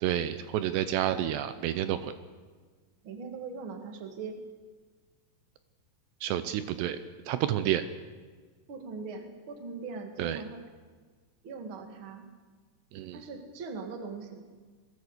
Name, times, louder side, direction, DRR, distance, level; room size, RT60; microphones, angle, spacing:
voice 1, 0.0-2.1 6.2-7.0 7.3-7.8 10.2-10.4 12.9-13.2, right 11 dB, 80° right, 11 dB, 2.8 m, -29 dB
voice 2, 3.0-4.4 8.7-10.6 11.4-12.3 13.1-14.4, right 4 dB, 40° right, 5 dB, 2.1 m, -40 dB
21.0 x 16.5 x 8.1 m, 1.5 s
omnidirectional pair, 5.1 m